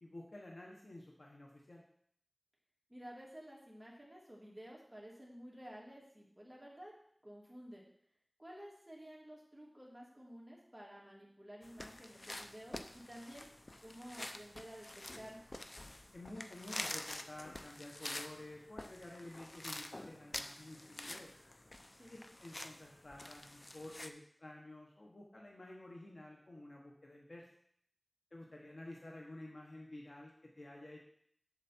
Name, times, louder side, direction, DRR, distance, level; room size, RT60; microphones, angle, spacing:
voice 1, 0.0-1.8 16.1-21.4 22.1-27.5 28.3-31.0, left 1 dB, 80° left, -1 dB, 1.2 m, -51 dB
voice 2, 2.9-6.9 7.2-7.8 8.4-13.5 13.8-15.5 21.9-22.1, equal, 15° right, -4 dB, 2.9 m, -53 dB
sound 1, 11.6-24.1, left 1 dB, 50° left, 0.5 m, -48 dB
7.3 x 7.3 x 4.4 m, 0.66 s
wide cardioid pair, 45°, 0 cm